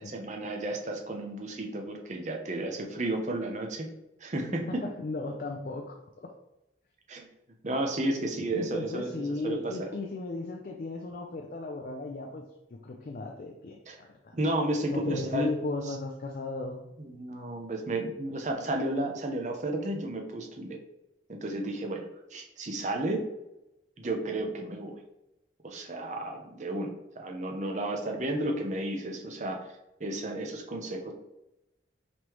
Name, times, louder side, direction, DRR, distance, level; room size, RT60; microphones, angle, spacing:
voice 1, 0.1-3.9 4.2-4.9 7.1-7.3 7.6-9.9 13.9-14.0 14.3-15.5 15.9-16.0 17.0-20.8 21.3-22.1 22.3-23.3 24.0-25.0 25.6-29.6 30.0-31.1, right 1 dB, 40° right, 2 dB, 0.7 m, -32 dB
voice 2, 4.7-6.3 8.0-8.1 8.5-12.4 12.7-14.4 14.9-16.8, left 3 dB, 50° left, 2 dB, 0.4 m, -36 dB
5.2 x 3.2 x 3.0 m, 0.90 s
head